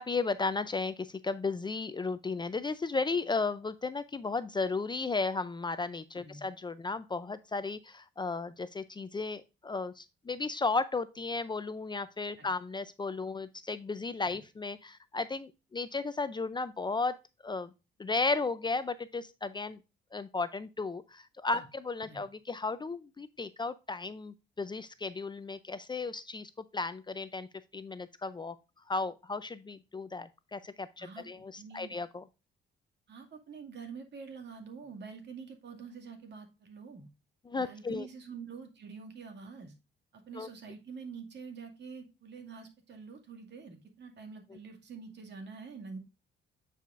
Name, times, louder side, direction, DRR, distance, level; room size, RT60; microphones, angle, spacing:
voice 1, 0.0-17.2 17.4-17.7 18.0-19.8 20.1-27.5 27.7-28.6 28.9-32.2 37.5-38.1 40.3-40.5, left 3 dB, 25° left, 13 dB, 0.5 m, -34 dB
voice 2, 31.6-32.0 33.1-37.1 37.5-39.7 40.1-46.0, right 5 dB, 60° right, 3 dB, 2.2 m, -46 dB
8.9 x 4.9 x 2.5 m, 0.27 s
cardioid pair, 90°, 20 cm